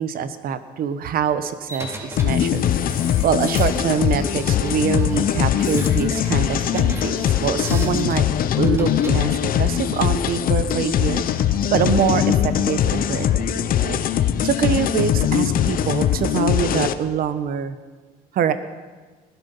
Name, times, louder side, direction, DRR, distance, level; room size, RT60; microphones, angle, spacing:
voice 1, 0.0-2.6 3.2-8.2 8.6-11.2 11.7-14.0 14.4-17.8 18.3-18.5, right 8 dB, 60° right, 11 dB, 1.1 m, -24 dB
sound 1, 1.7-9.2, equal, 15° right, 3.6 m, -37 dB
sound 2, 2.2-16.9, left 10 dB, 55° left, 0.9 m, -21 dB
20.5 x 12.5 x 5.5 m, 1.4 s
cardioid pair, 110°, 17 cm